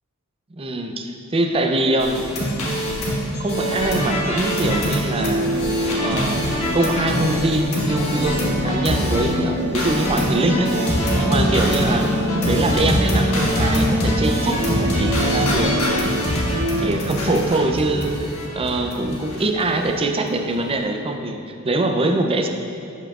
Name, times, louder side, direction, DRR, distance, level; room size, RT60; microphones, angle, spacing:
voice 1, 0.5-2.2 3.4-5.5 6.0-10.7 11.2-16.1 16.8-18.3 18.5-22.5, right 2 dB, 25° right, 4 dB, 0.4 m, -23 dB
sound 1, 2.0-9.3 9.7-19.7 19.9-20.0 20.3-20.5, equal, 70° left, 1.6 m, -24 dB
sound 2, 3.6-17.0, equal, 50° right, 1.4 m, -26 dB
11.5 x 5.6 x 2.4 m, 2.5 s
head